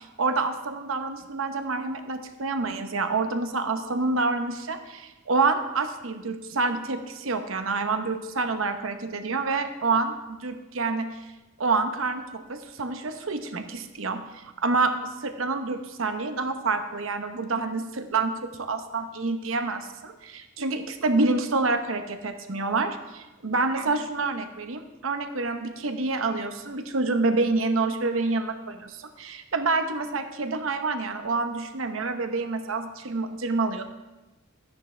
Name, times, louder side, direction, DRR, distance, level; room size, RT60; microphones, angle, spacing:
voice 1, 0.0-11.1 11.6-33.8, right 3 dB, 75° right, 7 dB, 0.9 m, -27 dB
12.5 x 10.0 x 3.3 m, 1.1 s
head